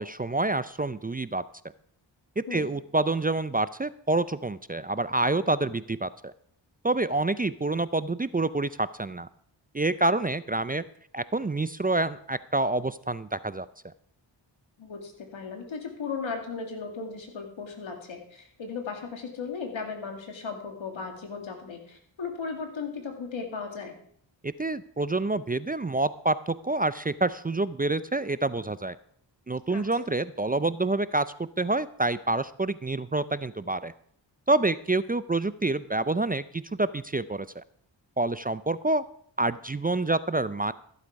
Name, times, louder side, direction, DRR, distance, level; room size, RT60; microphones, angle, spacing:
voice 1, 0.0-1.4 2.4-6.3 6.8-9.3 9.7-10.8 11.1-13.7 24.4-29.0 29.5-33.9 34.5-37.6 38.2-39.0 39.4-40.7, right 2 dB, 20° right, 15 dB, 0.5 m, -27 dB
voice 2, 2.5-2.8 14.8-24.0 29.7-30.1, left 5 dB, 85° left, 3 dB, 2.5 m, -36 dB
14.5 x 8.2 x 5.3 m, 0.64 s
cardioid pair, 45°, 46 cm